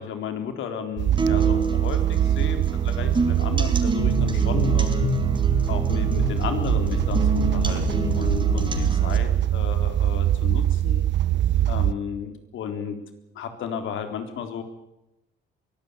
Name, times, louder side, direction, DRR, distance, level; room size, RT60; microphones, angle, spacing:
voice 1, 0.0-5.1 5.7-11.1 11.7-13.0 13.3-14.6, left 7 dB, 80° left, 7 dB, 3.8 m, -33 dB
sound 1, 1.0-11.9, right 11 dB, 65° right, 0.8 m, -23 dB
sound 2, 1.2-9.2, right 4 dB, 25° right, 4.3 m, -29 dB
sound 3, 4.0-9.5, left 5 dB, 40° left, 7.8 m, -30 dB
23.0 x 16.5 x 8.6 m, 0.89 s
cardioid pair, 90°, 20 cm